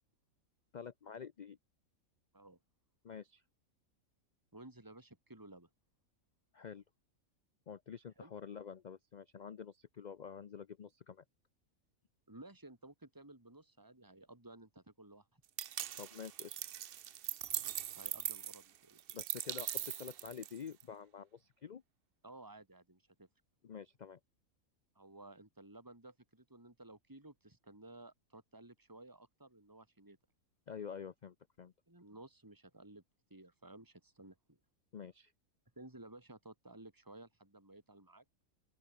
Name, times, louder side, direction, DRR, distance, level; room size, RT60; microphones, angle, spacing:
voice 1, 0.7-1.6 3.0-3.4 6.5-6.8 7.7-11.2 16.0-16.6 19.1-21.8 23.6-24.2 30.7-31.7 34.9-35.3, left 7 dB, 55° left, 0.5 m, -48 dB
voice 2, 4.5-5.7 8.2-8.3 12.3-15.4 17.9-19.0 22.2-23.3 24.9-30.2 31.9-33.0 33.3-34.6 35.8-38.2, right 2 dB, 15° right, 3.2 m, -55 dB
sound 1, 15.6-20.8, right 11 dB, 60° right, 0.6 m, -41 dB
open air
omnidirectional pair, 1.5 m